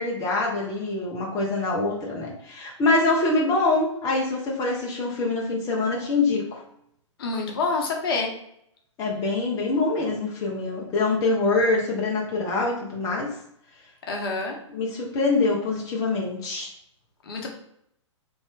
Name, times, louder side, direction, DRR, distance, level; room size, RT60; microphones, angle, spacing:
voice 1, 0.0-6.6 9.0-13.3 14.7-16.7, left 3 dB, 20° left, -2 dB, 0.7 m, -24 dB
voice 2, 7.2-8.3 14.1-14.6 17.2-17.5, left 3 dB, 50° left, 1 dB, 0.9 m, -27 dB
3.5 x 2.5 x 3.4 m, 0.73 s
figure-of-eight pair, 115°, 16 cm